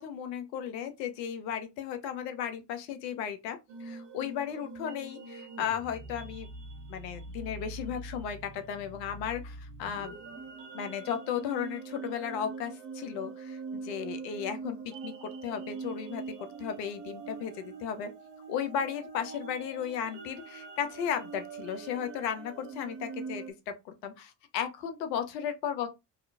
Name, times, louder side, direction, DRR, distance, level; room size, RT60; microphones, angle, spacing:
voice 1, 0.0-6.5 6.9-10.2 10.7-14.8 15.0-16.2 16.6-18.1 18.5-25.9, left 8 dB, 80° left, 0.6 m, -35 dB
sound 1, 3.7-23.5, right 4 dB, 55° right, 0.9 m, -43 dB
2.8 x 2.3 x 2.3 m
hypercardioid pair, 55°, 50 cm